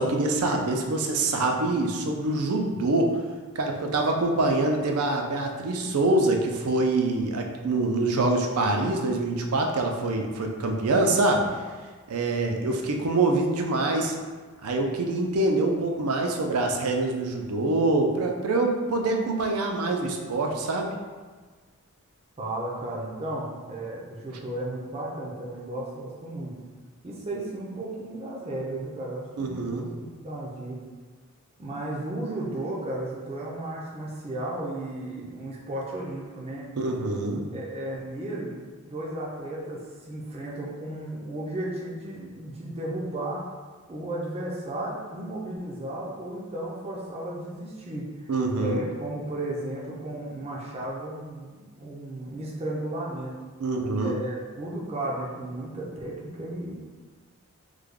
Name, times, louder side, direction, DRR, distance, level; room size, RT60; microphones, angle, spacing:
voice 1, 0.0-3.2 3.6-11.4 12.1-14.2 14.6-20.9 29.4-29.9 36.8-37.4 48.3-48.8 53.6-54.1, right 2 dB, 80° right, 2 dB, 0.5 m, -25 dB
voice 2, 22.4-26.5 27.0-30.8 31.6-36.7 37.5-38.6 38.8-43.4 43.9-53.4 54.0-56.7, right 1 dB, 30° right, -4 dB, 0.5 m, -34 dB
3.2 x 2.2 x 3.6 m, 1.4 s
head